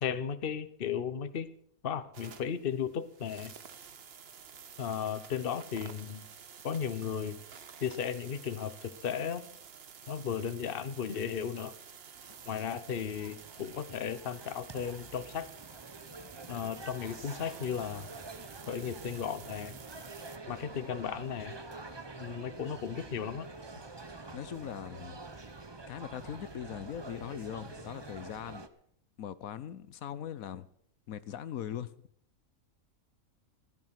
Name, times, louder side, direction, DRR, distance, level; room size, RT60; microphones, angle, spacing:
voice 1, 0.0-1.5 1.8-3.5 4.8-6.3 6.6-7.4 7.8-9.4 10.1-11.7 12.5-15.5 16.5-18.1 18.7-19.8 20.5-21.6 22.2-23.5, left 7 dB, 45° left, 1.1 m, -35 dB
sound 1, 2.1-20.4, right 7 dB, 50° right, 1.1 m, -51 dB
sound 2, 12.1-28.7, right 3 dB, 20° right, 0.9 m, -47 dB
voice 2, 24.3-25.2 25.9-28.6 29.2-30.7 31.1-31.9, left 10 dB, 80° left, 1.2 m, -40 dB
15.5 x 13.5 x 5.9 m
omnidirectional pair, 1.5 m